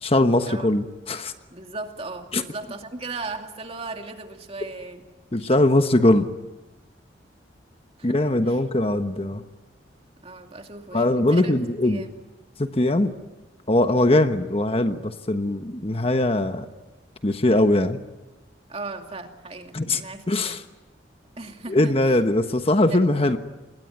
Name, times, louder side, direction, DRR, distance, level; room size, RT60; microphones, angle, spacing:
voice 1, 0.0-1.3 2.3-2.4 5.3-6.3 8.0-9.4 10.9-12.0 12.6-13.1 13.7-16.7 17.2-18.0 19.7-20.0 20.3-20.6 21.7-23.4, left 1 dB, 35° left, 8 dB, 1.2 m, -21 dB
voice 2, 1.5-5.1 8.0-8.2 8.5-8.6 10.2-11.5 11.8-12.1 18.7-20.6 21.4-22.2 22.9-23.0, right 3 dB, 35° right, 4 dB, 2.6 m, -37 dB
28.0 x 21.5 x 9.4 m, 1.1 s
head